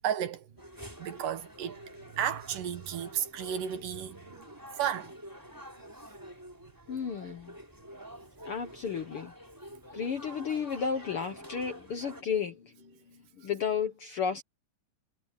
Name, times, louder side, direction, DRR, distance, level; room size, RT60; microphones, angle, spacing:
voice 1, 0.0-0.5 1.0-1.8 2.1-4.5 4.8-5.1, right 9 dB, 75° right, 3.0 m, -33 dB
sound 1, 0.6-12.2, equal, 5° right, 4.0 m, -48 dB
voice 2, 6.9-7.5 8.4-9.3 9.9-12.7 13.4-14.4, left 6 dB, 60° left, 1.5 m, -32 dB
omnidirectional pair, 3.9 m